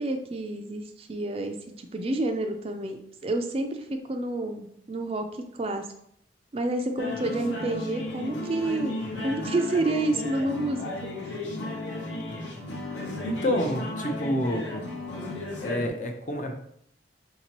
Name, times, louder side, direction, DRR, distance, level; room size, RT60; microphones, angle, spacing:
voice 1, 0.0-5.9 6.5-8.9 9.2-10.8 11.2-11.4, right 2 dB, 30° right, 5 dB, 0.3 m, -29 dB
sound 1, 7.0-15.9, left 1 dB, 80° left, 0.9 m, -34 dB
voice 2, 13.2-14.9 15.6-16.5, equal, 40° left, 4 dB, 0.5 m, -28 dB
5.8 x 2.8 x 2.9 m, 0.72 s
head